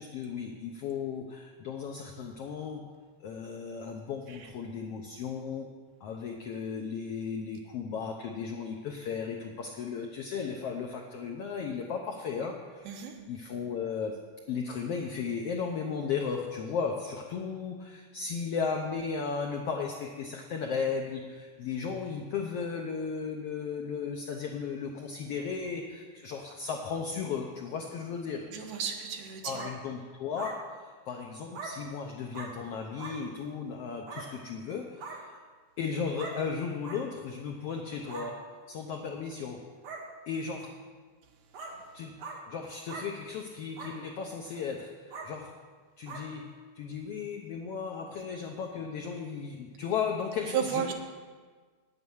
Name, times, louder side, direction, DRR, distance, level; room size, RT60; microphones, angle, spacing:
voice 1, 0.0-2.9 3.2-5.7 6.0-13.0 13.3-28.5 29.4-35.4 35.8-39.7 40.3-40.8 41.9-42.2 42.5-45.6 46.0-50.9, left 6 dB, 80° left, 2 dB, 1.3 m, -35 dB
voice 2, 28.5-29.6 50.5-50.9, right 8 dB, 85° right, 3 dB, 2.8 m, -33 dB
sound 1, 29.5-29.7 30.4-30.6 31.5-31.7 32.3-32.5 33.0-33.1 34.1-34.2 35.0-35.2 36.2-36.4 36.8-37.0 38.0-38.3 39.1-39.2 39.8-40.0 40.6-40.7 41.5-41.7 42.2-42.4 42.9-43.1 43.8-43.9 44.5-44.6 45.1-45.3 46.1-46.2, right 4 dB, 60° right, 2.4 m, -41 dB
9.1 x 8.1 x 7.1 m, 1.5 s
omnidirectional pair, 3.6 m